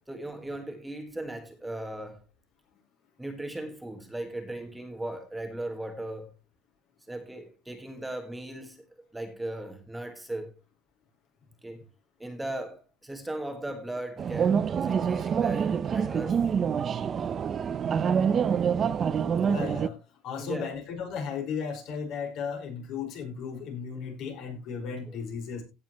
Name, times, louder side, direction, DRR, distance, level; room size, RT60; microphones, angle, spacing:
voice 1, 0.1-2.2 3.2-6.3 7.1-8.8 9.1-10.5 11.6-11.8 12.2-16.4 18.7-18.8 20.4-20.7 25.1-25.2, right 1 dB, 5° right, 1.8 m, -37 dB
sound 1, 14.2-19.9, right 7 dB, 35° right, 0.7 m, -26 dB
voice 2, 19.4-25.6, left 6 dB, 60° left, 5.4 m, -35 dB
16.5 x 6.9 x 3.1 m
cardioid pair, 120°, 0 cm